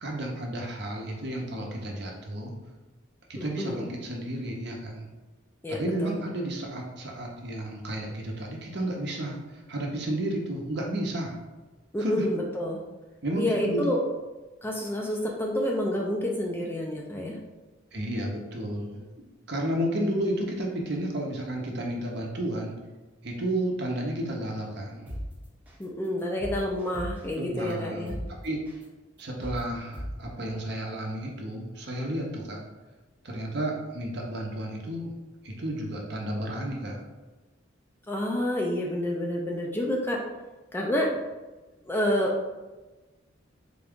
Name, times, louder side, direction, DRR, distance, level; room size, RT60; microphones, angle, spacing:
voice 1, 0.0-2.5 3.3-5.1 5.7-11.3 12.0-12.3 13.2-13.8 17.9-22.7 23.2-25.1 27.3-28.1 28.4-28.7 29.2-32.6 33.2-35.1 35.4-37.0, right 1 dB, 55° right, 0 dB, 0.7 m, -32 dB
voice 2, 3.4-3.9 5.6-6.2 11.9-12.8 13.3-14.0 14.6-17.4 25.8-28.2 38.1-40.2 40.7-41.2 41.9-42.5, left 1 dB, 10° left, -1 dB, 0.3 m, -28 dB
sound 1, 25.1-25.2 25.7-25.8 26.2-27.3 27.7-27.8 28.1-28.2 28.7-28.8 29.2-29.6 29.9-30.1, equal, 10° right, 0.8 m, -37 dB
3.8 x 2.3 x 3.5 m, 1.2 s
head